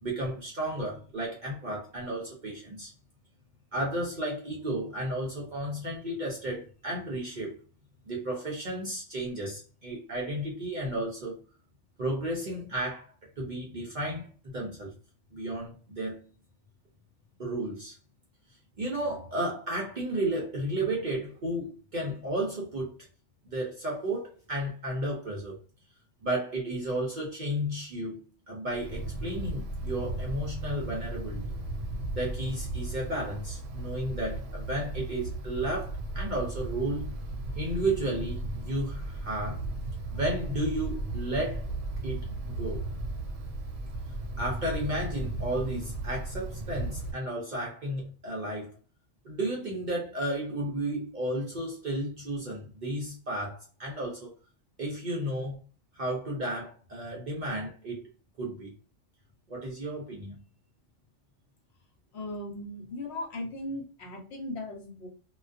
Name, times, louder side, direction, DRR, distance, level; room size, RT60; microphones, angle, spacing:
voice 1, 0.0-2.9 3.7-7.5 8.1-11.4 12.0-14.3 14.5-14.9 15.3-16.2 17.4-18.0 18.8-23.0 23.4-25.6 26.2-28.2 28.5-31.5 32.1-37.1 37.6-39.6 40.1-41.7 42.0-42.8 44.4-48.7 49.2-54.3 54.8-55.6 55.9-58.0 58.4-58.7 59.5-60.4, right 1 dB, 55° right, 0.6 m, -33 dB
Wind, 28.7-47.1, right 2 dB, 80° right, 0.9 m, -36 dB
voice 2, 62.1-65.1, left 1 dB, 65° left, 1.0 m, -37 dB
2.3 x 2.2 x 2.4 m
omnidirectional pair, 1.3 m